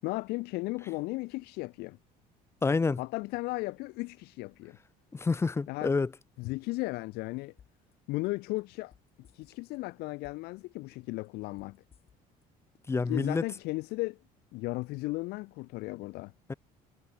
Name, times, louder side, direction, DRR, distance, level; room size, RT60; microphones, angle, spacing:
voice 1, 0.0-2.0 3.0-4.8 5.7-5.9 6.4-7.5 8.1-8.9 9.3-11.8 13.1-14.2 14.5-16.3, left 22 dB, 85° left, 2.3 m, -35 dB
voice 2, 2.6-3.0 5.1-6.1 12.9-13.4 16.5-16.6, left 4 dB, 15° left, 1.0 m, -28 dB
sound 1, 7.6-7.9 8.2-9.8 10.1-10.6 10.9-12.4 12.7-12.8, left 8 dB, 35° left, 5.8 m, -60 dB
cardioid pair, 145°, 16 cm